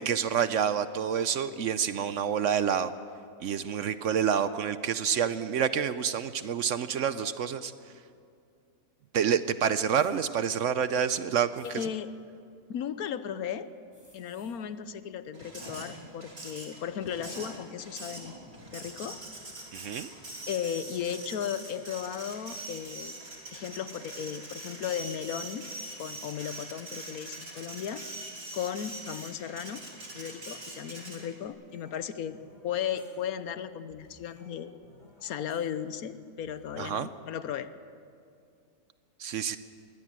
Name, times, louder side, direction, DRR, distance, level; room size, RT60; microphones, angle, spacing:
voice 1, 0.0-2.9 3.4-7.7 9.1-11.9 19.7-20.1 36.8-37.1 39.2-39.6, right 8 dB, 65° right, 13 dB, 0.9 m, -28 dB
sound 1, 9.9-10.1 10.8-10.9 11.4-11.7 13.9-14.6 14.9-15.0 15.4-15.9 17.0-17.5 18.1-19.8 20.1-20.3, equal, 15° right, 6.0 m, -50 dB
voice 2, 11.7-12.1 12.7-13.7 14.1-18.4 18.7-19.2 20.5-23.1 23.5-25.7 26.0-28.0 28.5-29.8 30.1-32.4 32.6-34.7 35.2-37.7, left 9 dB, 75° left, 13 dB, 1.3 m, -35 dB
Printer, 15.3-31.5, right 2 dB, 40° right, 3.3 m, -43 dB
sound 2, 31.7-33.6 33.9-36.7, left 1 dB, 50° left, 7.3 m, -58 dB
22.0 x 17.5 x 7.5 m, 2.4 s
omnidirectional pair, 1.6 m